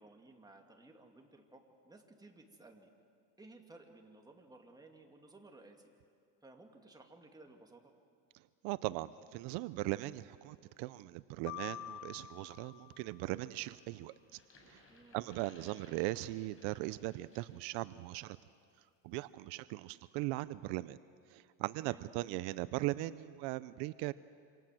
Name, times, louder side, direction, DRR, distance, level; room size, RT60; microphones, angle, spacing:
voice 1, 0.0-2.9 3.4-5.9 6.4-7.9 14.9-15.2 21.8-22.0, right 2 dB, 10° right, 2 dB, 2.7 m, -58 dB
voice 2, 8.6-14.8 15.1-18.4 19.0-21.0 21.3-24.1, right 18 dB, 80° right, 16 dB, 0.7 m, -39 dB
sound 1, 11.5-13.6, left 13 dB, 80° left, 1.2 m, -47 dB
sound 2, 14.2-17.7 18.1-18.3, left 3 dB, 35° left, 5.1 m, -63 dB
28.0 x 26.5 x 7.7 m, 2.2 s
cardioid pair, 135°, 40 cm